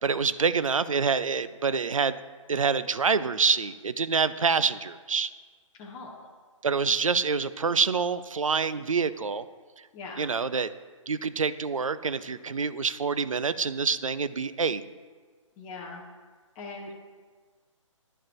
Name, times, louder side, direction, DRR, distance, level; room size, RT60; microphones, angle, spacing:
voice 1, 0.0-2.2 2.5-5.3 6.6-9.4 10.2-10.7 11.1-14.8, right 5 dB, 85° right, 14 dB, 0.4 m, -26 dB
voice 2, 5.8-6.2 9.9-10.2 15.6-16.0 16.6-16.9, left 3 dB, 15° left, -2 dB, 0.6 m, -40 dB
11.0 x 4.8 x 3.0 m, 1.4 s
figure-of-eight pair, 140°, 17 cm